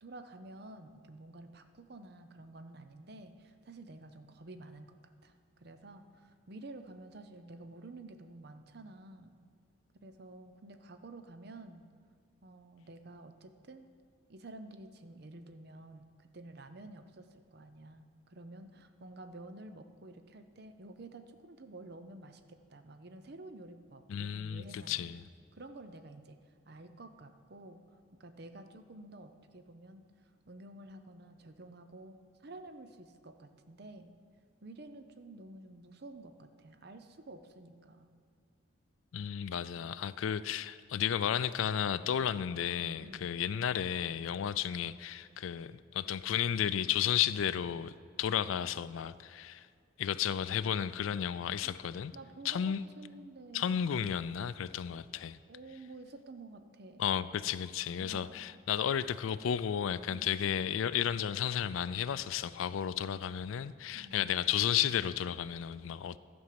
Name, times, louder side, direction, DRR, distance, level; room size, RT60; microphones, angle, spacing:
voice 1, 0.0-4.9 5.2-9.4 10.0-11.9 12.4-13.9 14.3-25.1 25.5-27.8 28.2-34.2 34.6-38.1 43.0-43.3 51.6-51.8 52.1-53.8 55.5-57.1 58.0-58.5 60.1-60.4 63.9-64.3, right 2 dB, 50° right, 8 dB, 0.6 m, -51 dB
voice 2, 24.1-25.2 39.1-49.7 50.0-52.1 52.4-52.8 53.5-55.4 57.0-66.2, left 9 dB, 80° left, 15 dB, 0.3 m, -33 dB
11.5 x 5.2 x 7.5 m, 2.1 s
head